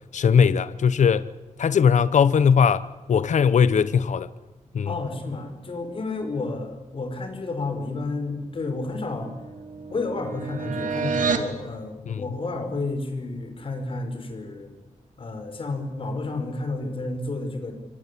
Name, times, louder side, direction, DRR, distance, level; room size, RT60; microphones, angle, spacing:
voice 1, 0.1-1.3 1.6-4.3 4.7-4.9 12.1-12.2, left 7 dB, 70° left, 0.9 m, -19 dB
voice 2, 4.9-9.3 9.9-14.7 15.2-17.7, left 3 dB, 45° left, 5.2 m, -31 dB
sound 1, 8.4-11.5, right 5 dB, 85° right, 3.0 m, -30 dB
26.0 x 25.0 x 8.5 m
wide cardioid pair, 170°, 13 cm